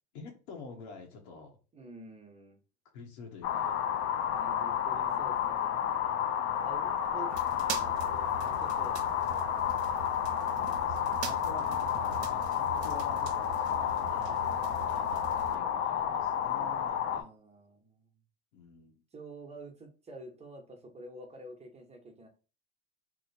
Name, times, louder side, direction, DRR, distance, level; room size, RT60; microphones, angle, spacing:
voice 1, 0.1-1.6 2.9-3.8 4.9-5.4 7.2-7.3 7.5-7.9 8.9-9.2 10.5-14.4 14.8-15.2 15.5-17.3 18.5-19.0, left 4 dB, 80° left, 1 dB, 0.9 m, -48 dB
voice 2, 1.7-2.6 4.3-5.8 6.6-7.3 7.7-9.2 14.1-14.5 17.1-18.1 19.1-22.3, right 2 dB, 20° right, 3 dB, 0.9 m, -48 dB
sound 1, 3.4-17.2, left 9 dB, 45° left, 0.5 m, -31 dB
sound 2, 7.3-15.6, right 6 dB, 85° right, 0.6 m, -43 dB
2.9 x 2.1 x 4.1 m, 0.34 s
supercardioid pair, 105°, 32 cm